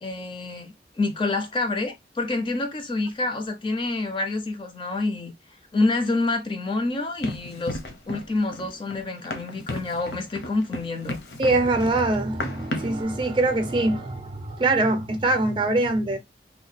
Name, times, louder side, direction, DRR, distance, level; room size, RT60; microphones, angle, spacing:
voice 1, 0.0-5.3 5.7-7.8 8.1-11.2, left 2 dB, 30° left, 0.4 m, -27 dB
Run, 7.2-13.0, left 1 dB, 75° left, 0.7 m, -35 dB
voice 2, 11.4-16.2, right 2 dB, 30° right, 0.5 m, -23 dB
2.8 x 2.2 x 4.0 m
head